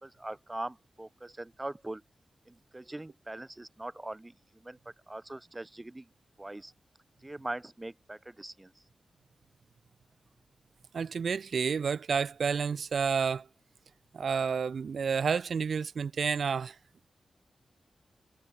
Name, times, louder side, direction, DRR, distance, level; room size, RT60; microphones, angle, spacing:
voice 1, 0.0-2.0 2.5-4.8 5.1-6.1 6.4-6.7 7.2-8.7, right 2 dB, 20° right, 1.0 m, -41 dB
voice 2, 10.9-13.5 14.1-16.8, right 6 dB, 75° right, 1.6 m, -30 dB
wide cardioid pair, 85°, 0 cm